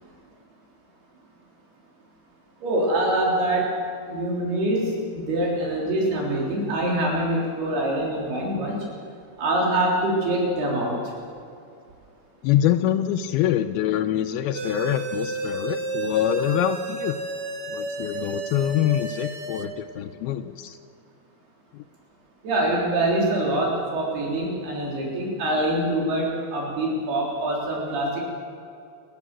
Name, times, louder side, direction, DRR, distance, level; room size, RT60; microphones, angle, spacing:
voice 1, 2.6-3.8 4.1-8.9 9.4-11.0 22.4-28.2, right 1 dB, 90° right, -3 dB, 5.7 m, -24 dB
voice 2, 12.4-17.2 17.7-20.8 21.7-21.8, left 11 dB, 85° left, 6 dB, 2.5 m, -25 dB
sound 1, 14.5-19.7, right 3 dB, 65° right, 1.0 m, -31 dB
29.5 x 13.5 x 7.5 m, 2.5 s
omnidirectional pair, 4.4 m